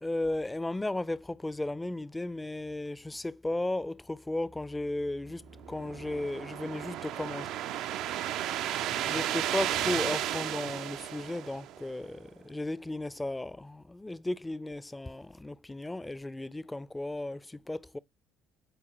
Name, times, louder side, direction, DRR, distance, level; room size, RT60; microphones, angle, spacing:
voice 1, 0.0-7.5 9.0-18.0, left 2 dB, 15° left, 0.5 m, -35 dB
sound 1, 5.5-12.0, right 12 dB, 60° right, 0.5 m, -34 dB
8.0 x 4.3 x 3.0 m
figure-of-eight pair, 55°, 0 cm